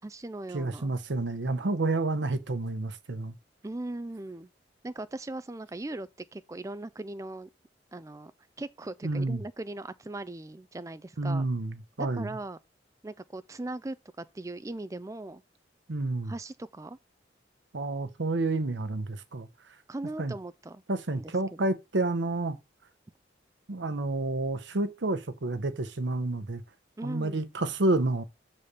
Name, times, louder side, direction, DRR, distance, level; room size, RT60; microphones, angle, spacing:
voice 1, 0.0-0.9 3.6-4.5 4.8-7.5 7.9-8.3 8.6-11.5 12.0-12.6 13.0-15.4 16.2-17.0 19.9-20.8 21.1-21.6 27.0-27.4, right 2 dB, 20° right, 0.4 m, -39 dB
voice 2, 0.5-3.3 9.0-9.4 11.2-12.3 15.9-16.3 17.7-19.5 20.2-20.3 20.9-22.6 23.7-26.6 27.0-28.2, right 2 dB, 85° right, 0.8 m, -29 dB
6.8 x 4.2 x 4.9 m
head